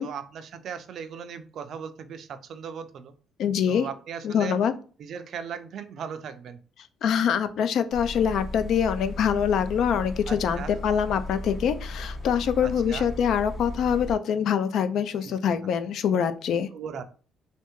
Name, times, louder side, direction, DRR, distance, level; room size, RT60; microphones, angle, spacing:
voice 1, 0.0-3.1 3.7-4.6 5.0-6.6 10.3-10.7 12.6-13.1 15.2-15.5 16.7-17.0, right 7 dB, 60° right, 10 dB, 0.4 m, -38 dB
voice 2, 3.4-3.9 4.2-4.7 7.0-16.7, left 8 dB, 65° left, 11 dB, 0.4 m, -24 dB
sound 1, 7.9-14.1, left 2 dB, 30° left, 1.5 m, -36 dB
3.3 x 2.8 x 3.0 m, 0.39 s
cardioid pair, 120°, 0 cm